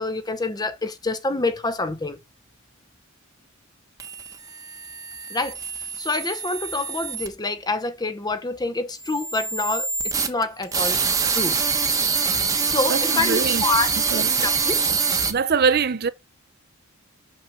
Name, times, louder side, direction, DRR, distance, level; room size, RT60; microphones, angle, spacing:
voice 1, 0.0-2.2 5.3-11.6 12.6-13.9 14.4-14.8, left 3 dB, 20° left, 0.8 m, -27 dB
sound 1, 4.0-7.3 8.9-15.3, right 5 dB, 15° right, 1.0 m, -25 dB
voice 2, 12.9-13.6 14.1-14.3 15.3-16.1, right 5 dB, 45° right, 0.5 m, -22 dB
6.1 x 6.0 x 6.4 m
head